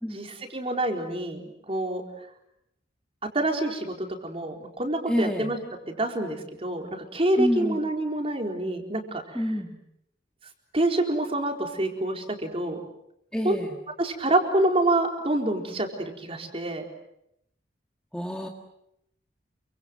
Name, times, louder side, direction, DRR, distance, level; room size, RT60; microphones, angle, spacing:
voice 1, 0.1-2.0 3.3-5.6 5.9-9.4 10.7-12.8 13.4-13.6 14.0-15.9 16.2-16.8, right 1 dB, 30° right, 3 dB, 4.3 m, -27 dB
voice 2, 5.1-5.5 7.4-7.8 9.4-9.8 13.3-13.7 18.1-18.5, equal, 5° left, 2 dB, 1.9 m, -27 dB
28.5 x 25.0 x 7.8 m, 0.80 s
head